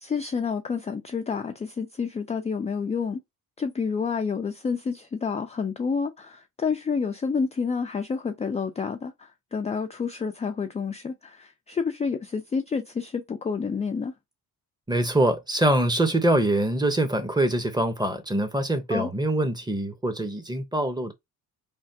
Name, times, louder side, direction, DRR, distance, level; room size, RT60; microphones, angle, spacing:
voice 1, 0.0-3.2 3.6-14.1 18.9-19.1, left 5 dB, 20° left, 0.3 m, -29 dB
voice 2, 14.9-21.1, right 1 dB, 10° right, 0.7 m, -24 dB
3.4 x 2.2 x 2.6 m
cardioid pair, 75°, 40 cm